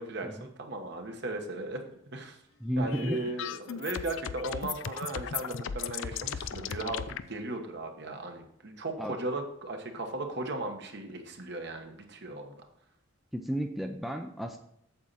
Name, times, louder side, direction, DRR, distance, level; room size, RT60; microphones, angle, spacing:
voice 1, 0.0-2.4 2.8-12.5, right 2 dB, 55° right, 4 dB, 1.3 m, -37 dB
voice 2, 2.6-3.2 9.0-9.2 13.3-14.6, equal, ahead, 4 dB, 0.5 m, -33 dB
sound 1, 2.9-7.2, left 8 dB, 70° left, 0.4 m, -37 dB
8.5 x 7.4 x 4.1 m, 0.73 s
head